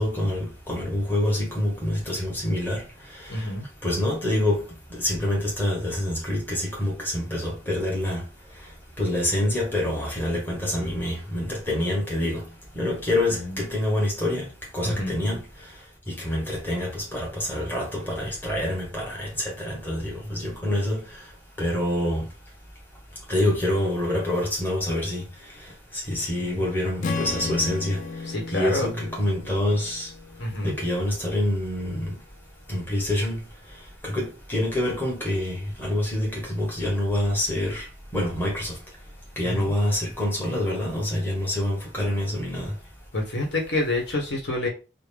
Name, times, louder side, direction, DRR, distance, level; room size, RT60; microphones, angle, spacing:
voice 1, 0.0-3.5 3.8-8.3 9.0-12.5 12.7-14.5 14.7-15.4 16.1-21.2 21.6-22.3 23.3-25.2 25.9-28.0 28.5-30.1 30.6-32.2 32.7-33.4 34.0-37.9 38.1-38.8 39.4-42.7, left 1 dB, 10° left, 1.1 m, -26 dB
voice 2, 3.3-3.7 13.3-13.6 14.8-15.2 26.4-26.6 28.3-28.9 30.4-30.7 39.4-39.7 43.1-44.7, left 2 dB, 75° left, 1.2 m, -28 dB
Strum, 27.0-31.3, left 3 dB, 45° left, 0.4 m, -34 dB
3.7 x 2.2 x 3.4 m
head